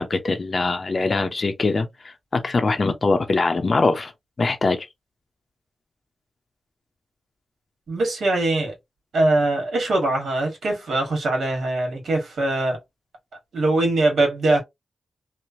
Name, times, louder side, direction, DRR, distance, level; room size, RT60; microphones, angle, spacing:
voice 1, 0.0-4.1 4.4-4.9, left 3 dB, 45° left, 0.5 m, -22 dB
voice 2, 7.9-8.7 9.1-12.8 13.5-14.6, right 2 dB, 80° right, 1.3 m, -22 dB
3.0 x 2.1 x 2.6 m
wide cardioid pair, 90°, 0 cm